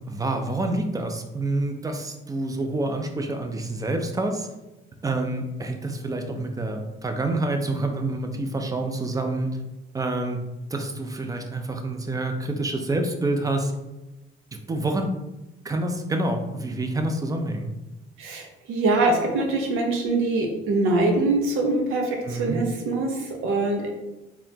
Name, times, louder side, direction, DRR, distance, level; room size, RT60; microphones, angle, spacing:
voice 1, 0.1-4.5 5.0-9.5 9.9-10.4 10.7-13.7 14.7-15.1 15.6-17.7 22.3-22.6, right 2 dB, 15° right, 5 dB, 0.5 m, -27 dB
voice 2, 18.2-23.9, right 2 dB, 80° right, 2 dB, 0.8 m, -23 dB
4.0 x 3.0 x 2.8 m, 1.0 s
cardioid pair, 110°, 21 cm